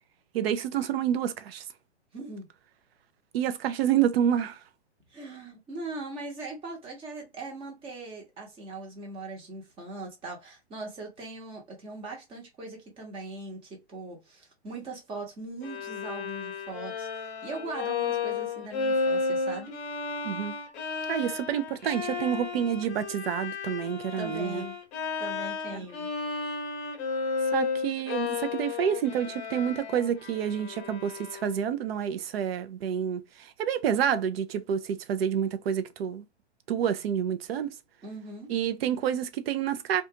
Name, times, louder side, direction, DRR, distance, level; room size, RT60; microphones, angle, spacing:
voice 1, 0.3-1.6 3.3-4.6 20.2-20.5 21.1-24.6 25.7-25.8 27.5-36.2 36.7-37.7 38.5-40.0, right 9 dB, 60° right, 0.5 m, -28 dB
voice 2, 2.1-2.5 5.1-19.8 24.2-24.8 25.2-26.1 38.0-38.5, right 3 dB, 15° right, 0.9 m, -40 dB
Bowed string instrument, 15.6-31.7, left 4 dB, 30° left, 0.8 m, -33 dB
2.5 x 2.3 x 2.7 m
hypercardioid pair, 135°, 34 cm